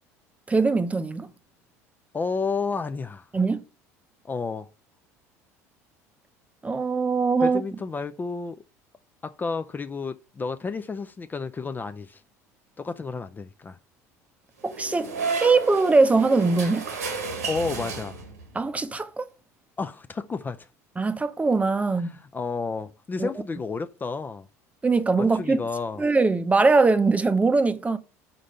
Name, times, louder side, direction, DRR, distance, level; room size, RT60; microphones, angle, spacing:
voice 1, 0.5-1.3 3.3-3.6 6.6-7.6 14.6-16.8 18.5-19.3 21.0-22.1 23.2-23.3 24.8-25.6 26.0-28.0, right 3 dB, 15° right, 0.7 m, -21 dB
voice 2, 2.1-3.3 4.2-4.7 7.4-8.6 9.2-12.2 12.8-13.8 17.5-18.2 19.8-20.7 22.1-24.5 25.2-26.0, left 4 dB, 20° left, 0.4 m, -31 dB
sound 1, 14.6-18.5, right 4 dB, 85° right, 1.2 m, -32 dB
5.1 x 4.3 x 5.0 m
hypercardioid pair, 70°, 8 cm